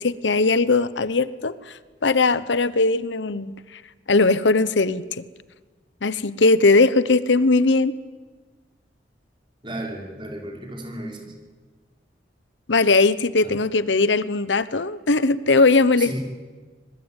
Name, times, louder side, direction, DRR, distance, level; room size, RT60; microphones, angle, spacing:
voice 1, 0.0-1.6 2.0-3.8 4.1-5.0 6.0-7.9 12.7-16.1, left 3 dB, 85° left, 16 dB, 1.0 m, -19 dB
voice 2, 9.6-11.3 13.4-13.6 16.0-16.2, right 1 dB, 25° right, 1 dB, 5.0 m, -34 dB
25.5 x 21.0 x 9.0 m, 1.4 s
head